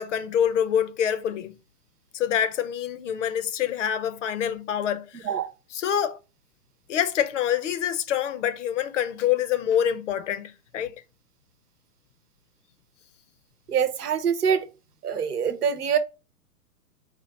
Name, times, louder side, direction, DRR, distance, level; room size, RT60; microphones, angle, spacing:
voice 1, 0.0-1.5 2.1-5.3 5.7-6.2 6.9-10.9, left 9 dB, 55° left, 0.7 m, -26 dB
voice 2, 13.7-14.6 15.0-16.0, right 7 dB, 80° right, 1.0 m, -24 dB
4.4 x 2.4 x 4.5 m
hypercardioid pair, 120°, 46 cm